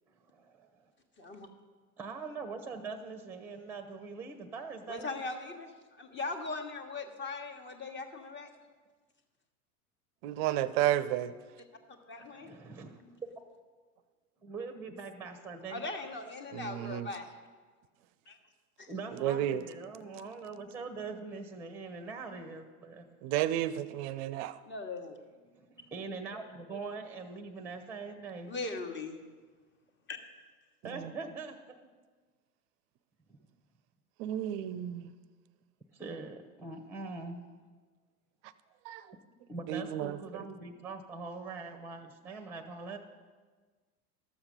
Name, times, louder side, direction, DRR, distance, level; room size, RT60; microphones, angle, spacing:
voice 1, 0.1-0.9 2.0-5.1 12.2-13.2 14.4-15.8 18.9-23.1 25.4-28.5 30.8-31.6 33.3-33.4 35.9-37.5 39.5-43.0, right 4 dB, 5° right, 5 dB, 0.8 m, -43 dB
voice 2, 1.2-1.5 4.9-8.5 12.1-12.5 15.7-17.3 18.3-18.4 18.8-18.9 24.6-25.2 28.5-29.2 30.1-30.2, left 3 dB, 25° left, 5 dB, 1.3 m, -39 dB
voice 3, 10.2-11.3 16.5-17.1 19.2-19.6 23.2-24.6 31.0-31.1 34.2-35.1 38.9-39.0 39.7-40.2, right 12 dB, 40° right, 15 dB, 0.5 m, -31 dB
13.0 x 7.2 x 5.2 m, 1.4 s
hypercardioid pair, 90°, 46 cm